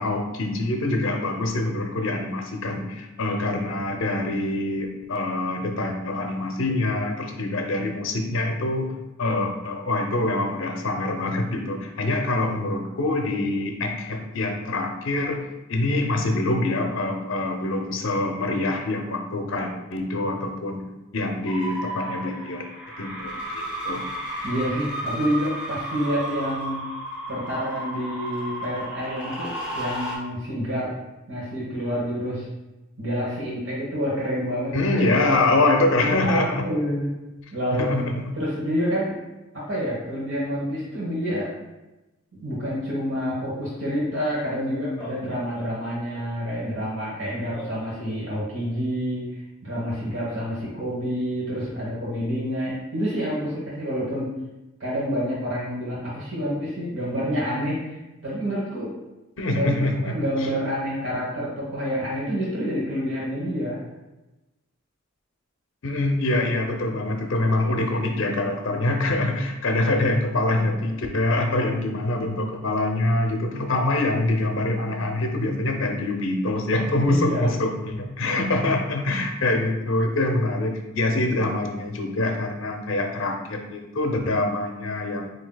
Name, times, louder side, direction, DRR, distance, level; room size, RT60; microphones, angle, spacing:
voice 1, 0.0-8.9 9.2-20.8 21.1-22.6 23.0-24.0 34.7-36.7 37.7-38.2 59.4-60.5 65.8-85.3, left 2 dB, 70° left, 4 dB, 0.6 m, -25 dB
sound 1, 21.5-30.2, right 1 dB, 5° right, 1.0 m, -33 dB
voice 2, 24.4-26.9 27.3-30.9 31.3-32.5 33.0-35.2 36.0-37.1 37.5-39.1 39.5-41.5 42.3-54.3 54.8-59.0 59.5-63.8 77.1-77.5, equal, 65° right, -7 dB, 1.1 m, -28 dB
Laughter, 44.1-44.2 44.8-46.5 47.5-48.8, equal, 30° left, 0.8 m, -43 dB
7.3 x 2.8 x 2.3 m, 1.0 s
head